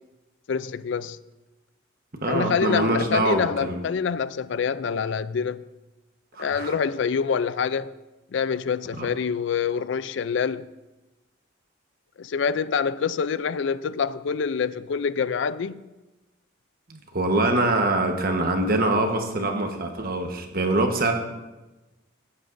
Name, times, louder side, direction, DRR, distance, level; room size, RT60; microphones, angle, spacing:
voice 1, 0.5-1.2 2.2-5.6 6.4-7.9 8.3-10.7 12.2-15.9, left 6 dB, 60° left, 0.4 m, -26 dB
voice 2, 2.2-3.8 6.3-6.8 9.0-9.1 16.9-21.1, right 2 dB, 45° right, 1.2 m, -24 dB
15.5 x 10.0 x 2.6 m
head